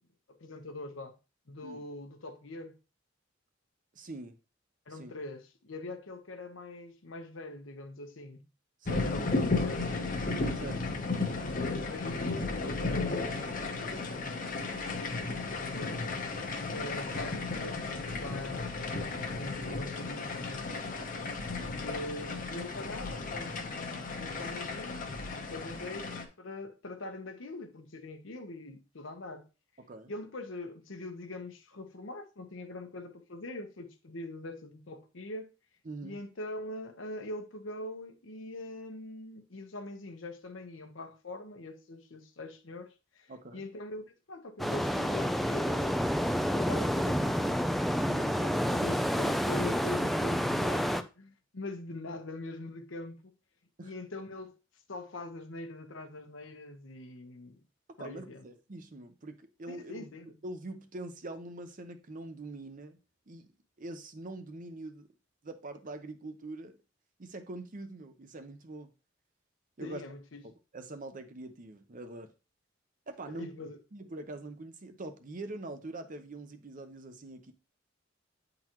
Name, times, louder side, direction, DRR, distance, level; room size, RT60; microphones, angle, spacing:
voice 1, 0.3-1.2 1.5-2.8 4.9-8.5 9.1-10.0 11.7-14.3 14.6-25.1 25.3-29.5 30.1-35.5 36.0-46.1 46.5-47.6 48.1-53.3 53.8-54.6 54.9-57.6 58.0-58.4 59.7-60.4 69.8-70.4 73.3-73.8, left 2 dB, 70° left, 0.9 m, -43 dB
voice 2, 3.9-4.4 4.9-5.1 8.8-9.2 10.5-10.9 21.4-21.8 29.8-30.1 35.8-36.2 43.3-43.7 53.8-53.9 58.0-60.1 60.4-63.0 63.3-63.5 63.8-65.1 65.4-66.8 67.2-68.9 69.8-70.0 70.4-72.3 73.1-73.5 73.9-77.5, right 2 dB, 45° right, 0.7 m, -44 dB
sound 1, 8.9-26.2, left 3 dB, 45° left, 0.9 m, -34 dB
sound 2, 44.6-51.0, equal, ahead, 0.3 m, -29 dB
8.8 x 3.9 x 3.0 m
head